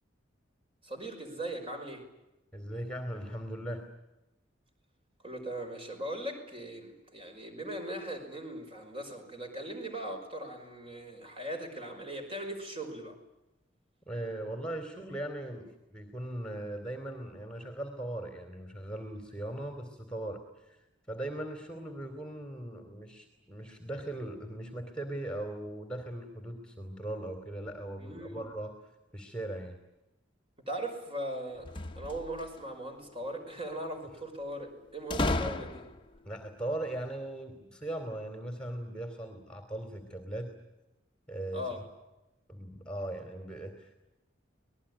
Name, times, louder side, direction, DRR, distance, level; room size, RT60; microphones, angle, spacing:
voice 1, 0.8-2.0 5.2-13.2 28.0-28.5 30.7-31.7 31.9-35.9 41.5-41.8, right 1 dB, 30° right, 4 dB, 5.7 m, -39 dB
voice 2, 2.5-3.8 14.1-28.7 29.1-29.8 34.0-34.1 36.2-40.5 41.3-41.8 42.5-43.9, right 1 dB, 5° left, 6 dB, 2.8 m, -39 dB
sound 1, 31.6-32.6 35.1-36.2, left 2 dB, 25° left, 1.1 m, -33 dB
26.0 x 20.0 x 10.0 m, 0.98 s
head